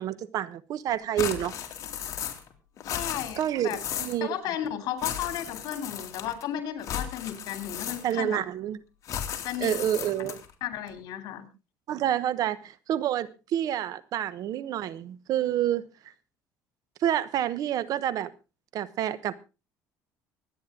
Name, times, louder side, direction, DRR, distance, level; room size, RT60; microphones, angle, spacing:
voice 1, 0.0-1.5 3.4-4.4 8.0-8.8 9.6-10.4 11.9-15.8 17.0-18.3 18.7-19.3, right 11 dB, 60° right, 1.0 m, -28 dB
sound 1, 1.2-2.5 2.8-4.2 5.0-6.4 6.8-8.3 9.0-10.5, left 9 dB, 50° left, 2.5 m, -35 dB
voice 2, 2.8-3.8 4.2-8.4 9.4-9.7 10.6-11.5, left 11 dB, 70° left, 3.1 m, -34 dB
24.5 x 9.5 x 3.7 m
cardioid pair, 120°, 7 cm